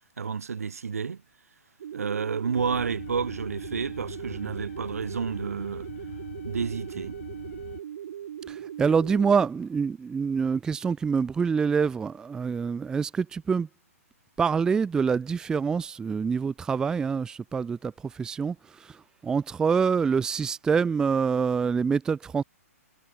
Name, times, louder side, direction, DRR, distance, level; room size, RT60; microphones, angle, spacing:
voice 1, 0.2-1.2 1.9-5.9 6.4-7.2, right 6 dB, 70° right, 1.1 m, -30 dB
sound 1, 1.8-9.5, right 10 dB, 55° right, 3.5 m, -39 dB
sound 2, 2.6-7.8, left 11 dB, 50° left, 3.4 m, -43 dB
voice 2, 8.5-13.7 14.4-19.0 19.2-22.4, right 6 dB, 10° right, 0.4 m, -26 dB
figure-of-eight pair, 125°, 8 cm